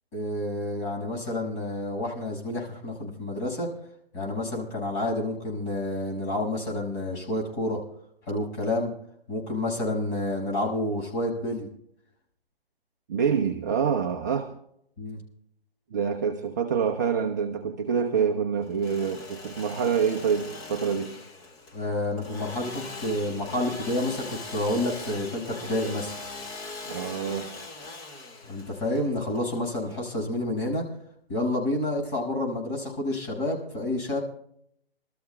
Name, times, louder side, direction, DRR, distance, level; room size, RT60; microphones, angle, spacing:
voice 1, 0.1-3.7 4.1-7.8 8.3-8.9 9.3-11.7 15.0-15.2 21.7-26.1 28.5-30.9 31.3-34.2, left 1 dB, 30° left, -2 dB, 6.1 m, -29 dB
voice 2, 13.1-14.5 15.9-21.1 26.9-27.5, right 7 dB, 20° right, 2 dB, 0.5 m, -26 dB
Engine / Sawing, 18.6-30.3, left 3 dB, 10° left, 0.7 m, -41 dB
28.0 x 13.5 x 2.3 m, 0.70 s
hypercardioid pair, 150°, 31 cm